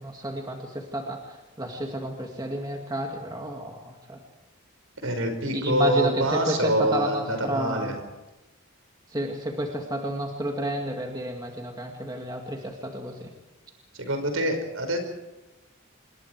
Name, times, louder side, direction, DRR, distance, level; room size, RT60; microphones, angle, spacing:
voice 1, 0.0-4.2 5.5-8.0 9.1-13.3, right 1 dB, 20° right, 2 dB, 2.0 m, -31 dB
voice 2, 5.0-7.9 13.9-15.0, right 1 dB, 70° right, 6 dB, 5.5 m, -26 dB
26.5 x 22.0 x 4.8 m, 1.0 s
head